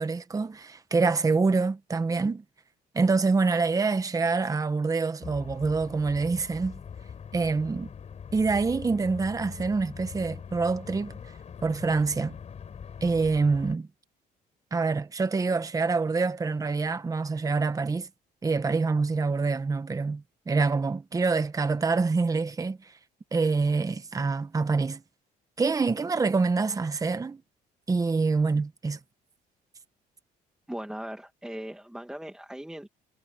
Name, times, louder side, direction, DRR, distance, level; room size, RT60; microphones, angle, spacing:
voice 1, 0.0-2.4 2.9-6.8 7.3-7.9 8.3-11.3 11.6-12.4 13.0-13.9 14.7-18.1 18.4-22.9 23.3-25.0 25.6-27.4 27.9-29.0, right 4 dB, 20° right, 1.2 m, -26 dB
sound 1, 5.2-13.8, left 7 dB, 40° left, 6.1 m, -42 dB
voice 2, 30.7-32.9, right 1 dB, 5° right, 1.9 m, -39 dB
cardioid pair, 110°, 17 cm